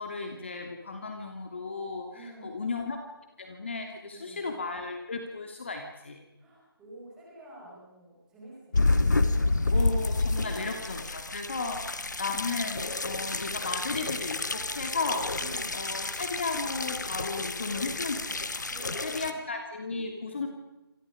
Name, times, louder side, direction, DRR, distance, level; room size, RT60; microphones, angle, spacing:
voice 1, 0.0-3.0 3.4-6.2 9.7-15.3 15.7-18.7 19.0-20.5, left 4 dB, 30° left, 3 dB, 2.7 m, -35 dB
voice 2, 2.1-2.8 4.1-4.6 6.4-9.9 10.4-10.7 11.6-12.3 15.4-16.0 18.7-19.5 20.2-20.5, right 1 dB, 5° right, -5 dB, 5.1 m, -49 dB
sound 1, 8.7-19.3, left 3 dB, 45° left, 2.0 m, -29 dB
29.5 x 27.0 x 5.1 m, 0.96 s
figure-of-eight pair, 170°, 13 cm